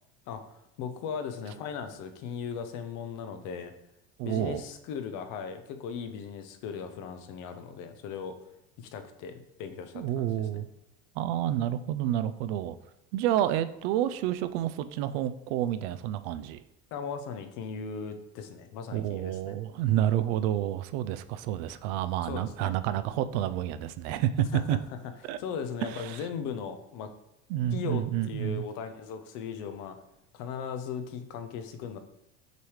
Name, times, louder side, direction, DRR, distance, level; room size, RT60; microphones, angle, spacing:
voice 1, 0.3-3.7 4.2-8.4 8.8-10.7 16.9-19.6 22.2-22.7 24.5-25.0 25.4-27.1 27.7-30.0 30.3-32.0, left 6 dB, 65° left, 9 dB, 0.8 m, -38 dB
voice 2, 4.2-4.6 9.9-10.6 11.2-12.8 13.1-16.6 18.9-24.8 25.3-25.4 26.1-26.2 27.5-28.6, right 12 dB, 80° right, 13 dB, 0.5 m, -29 dB
6.7 x 4.9 x 3.1 m, 0.87 s
cardioid pair, 135°, 33 cm